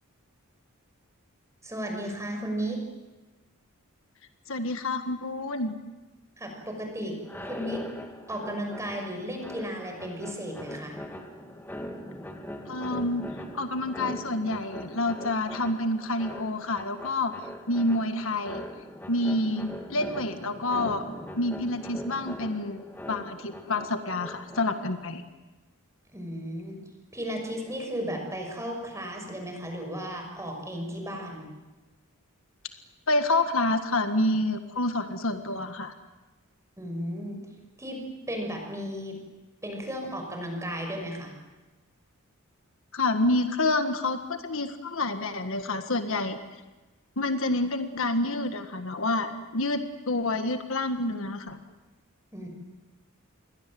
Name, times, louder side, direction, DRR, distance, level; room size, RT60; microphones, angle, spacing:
voice 1, 1.6-2.8 6.4-7.8 8.3-11.0 26.1-26.8 27.1-31.5 36.8-37.4 37.8-38.0 38.3-39.2 39.6-41.3 52.3-52.5, equal, 15° right, 3 dB, 6.1 m, -34 dB
voice 2, 4.5-5.7 12.7-13.3 13.5-17.3 17.7-18.6 19.1-21.0 21.4-25.2 33.1-35.9 42.9-46.4 47.2-51.6, left 2 dB, 65° left, 8 dB, 1.7 m, -28 dB
sound 1, 7.2-25.1, equal, 10° left, 2.2 m, -41 dB
28.5 x 22.5 x 7.8 m, 1.2 s
head